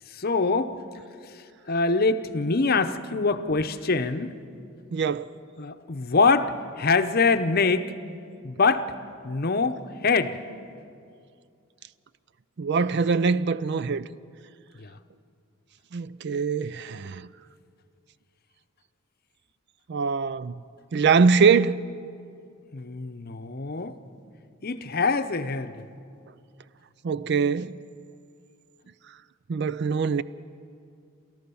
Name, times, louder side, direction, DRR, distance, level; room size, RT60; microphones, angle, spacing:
voice 1, 0.1-0.8 1.7-4.3 5.6-7.9 8.4-8.9 9.2-10.4 14.8-14.9 22.7-24.0 24.6-25.8, left 4 dB, 45° left, 0.8 m, -24 dB
voice 2, 4.9-5.3 12.6-14.1 15.9-17.3 19.9-20.5 20.9-21.8 27.0-27.7 29.5-30.2, right 5 dB, 55° right, 0.4 m, -23 dB
29.0 x 14.0 x 7.0 m
head